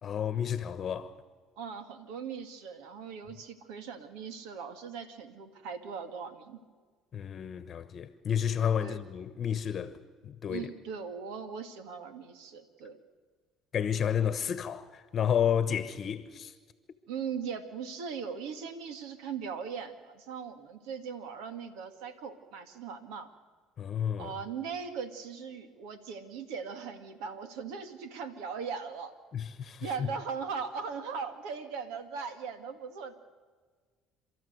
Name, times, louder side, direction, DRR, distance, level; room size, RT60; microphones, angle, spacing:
voice 1, 0.0-1.1 7.1-10.0 10.2-10.7 13.7-16.5 23.8-24.3 29.3-30.1, left 8 dB, 45° left, 1.1 m, -31 dB
voice 2, 1.6-6.6 8.8-9.0 10.5-13.0 17.1-23.3 24.2-29.1 29.8-33.2, right 6 dB, 80° right, 2.1 m, -39 dB
28.5 x 13.5 x 8.0 m
supercardioid pair, 90°, 0 cm